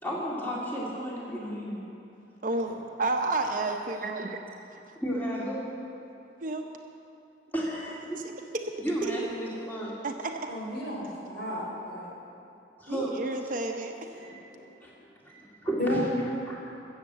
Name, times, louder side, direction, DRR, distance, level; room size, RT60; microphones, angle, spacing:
voice 1, 0.0-1.8 5.0-5.7 7.5-8.2 8.8-9.9 12.8-13.1 14.8-14.9 15.4-16.0 16.5-16.7, equal, 10° left, -5 dB, 2.3 m, -33 dB
voice 2, 2.4-4.4 4.9-5.0 6.4-6.7 8.5-8.6 9.0-9.3 10.0-10.4 12.9-13.9, right 2 dB, 45° right, 4 dB, 0.8 m, -31 dB
voice 3, 10.5-12.1 14.1-14.3 15.8-16.0, left 1 dB, 60° left, -4 dB, 3.6 m, -33 dB
14.5 x 7.4 x 7.9 m, 2.8 s
head